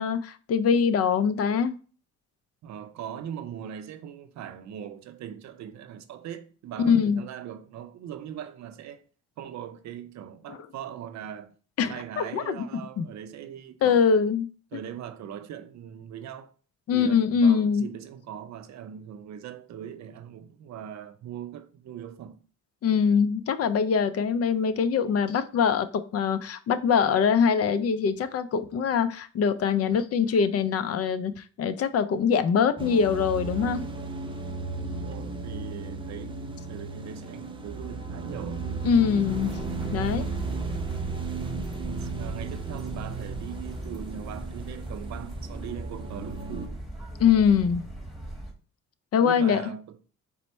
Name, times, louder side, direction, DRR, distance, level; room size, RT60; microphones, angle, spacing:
voice 1, 0.0-1.8 6.8-7.2 11.8-12.6 13.0-13.1 13.8-14.5 16.9-17.9 22.8-33.8 38.8-39.6 39.9-40.3 47.2-47.9 49.1-49.6, left 6 dB, 55° left, 0.4 m, -23 dB
voice 2, 2.6-9.0 9.4-11.5 11.9-14.0 14.7-16.5 16.9-22.4 34.7-38.7 41.8-46.8 49.2-50.0, right 9 dB, 65° right, 0.5 m, -40 dB
sound 1, 32.8-46.7, right 3 dB, 15° right, 0.6 m, -35 dB
sound 2, 39.3-48.5, right 1 dB, ahead, 1.2 m, -39 dB
4.3 x 2.1 x 4.1 m
cardioid pair, 90°, 30 cm